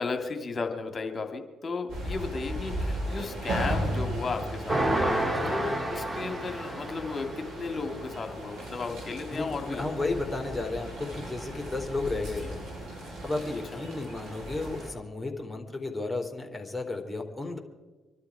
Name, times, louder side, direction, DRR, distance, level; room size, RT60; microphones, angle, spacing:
voice 1, 0.0-9.9 12.2-12.3 13.7-13.8, left 4 dB, 40° left, 5 dB, 2.3 m, -34 dB
sound 1, 1.9-14.9, right 1 dB, 75° right, 7.4 m, -36 dB
sound 2, 4.7-7.4, right 1 dB, 20° right, 2.3 m, -29 dB
voice 2, 5.2-5.5 9.3-17.6, left 2 dB, 10° left, 1 dB, 3.3 m, -33 dB
25.0 x 12.0 x 4.8 m, 1.3 s
hypercardioid pair, 45°, 0 cm